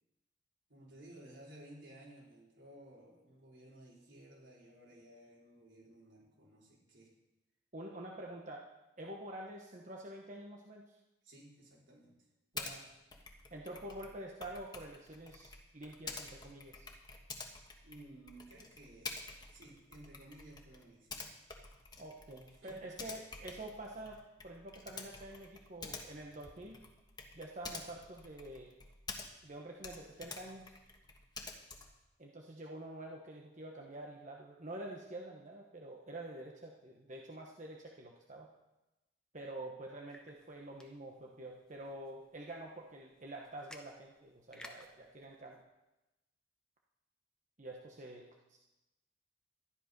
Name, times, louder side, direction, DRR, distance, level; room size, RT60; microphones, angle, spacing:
voice 1, 0.7-7.1 11.2-12.1 17.8-21.3 22.6-23.0, right 1 dB, 75° right, -4 dB, 4.4 m, -56 dB
voice 2, 7.7-8.6 9.0-11.0 12.5-12.9 13.5-16.9 22.0-24.2 24.4-26.8 27.3-28.7 29.4-30.7 32.2-38.5 39.3-45.6 47.6-48.6, right 1 dB, 40° right, -1 dB, 1.1 m, -47 dB
Typing, 12.6-12.8 13.1-29.5 29.8-32.0, left 4 dB, 20° left, 1.4 m, -49 dB
sound 1, 40.1-45.6, left 1 dB, 5° left, 1.0 m, -59 dB
13.0 x 11.0 x 5.3 m, 0.99 s
head